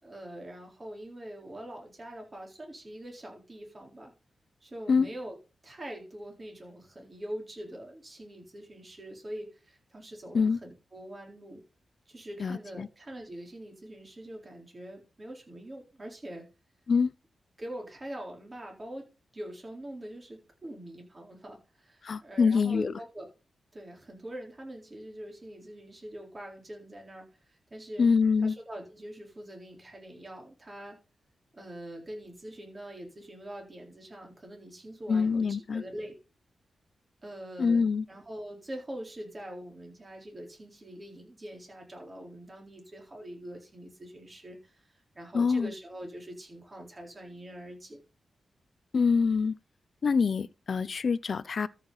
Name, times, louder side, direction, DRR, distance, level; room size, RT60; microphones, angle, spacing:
voice 1, 0.0-4.1 4.6-5.4 5.6-11.6 12.1-16.4 17.6-19.1 19.3-23.3 23.7-27.2 27.7-28.1 28.4-31.0 31.5-36.2 37.2-44.7 45.1-48.0, right 1 dB, 30° right, 3.9 m, -43 dB
voice 2, 12.4-12.9 16.9-17.1 22.0-22.9 28.0-28.5 35.1-35.8 37.6-38.0 45.3-45.7 48.9-49.5 50.0-51.7, left 5 dB, 55° left, 0.5 m, -25 dB
13.5 x 5.9 x 4.0 m
wide cardioid pair, 105°, 0 cm